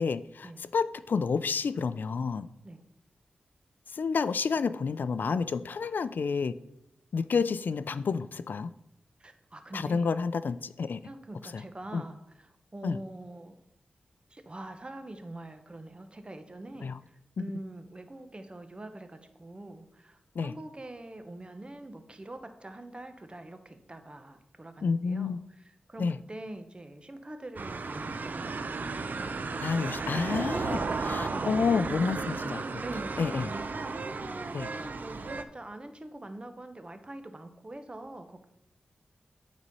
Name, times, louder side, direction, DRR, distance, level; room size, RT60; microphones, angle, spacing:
voice 1, 0.0-2.5 3.9-6.5 7.1-8.7 9.7-11.0 11.5-11.6 11.9-12.0 12.8-13.0 16.8-17.0 20.4-20.5 24.8-25.4 26.0-26.2 29.6-30.8 31.0-32.8 33.2-33.5 34.5-34.7, left 5 dB, 70° left, 14 dB, 0.4 m, -29 dB
voice 2, 9.2-10.1 11.0-13.6 14.3-29.3 30.7-31.6 32.8-38.5, right 1 dB, 30° right, 7 dB, 1.0 m, -44 dB
sound 1, 27.6-35.4, right 4 dB, 60° right, 0.6 m, -34 dB
8.1 x 4.2 x 5.5 m, 0.81 s
cardioid pair, 45°, 3 cm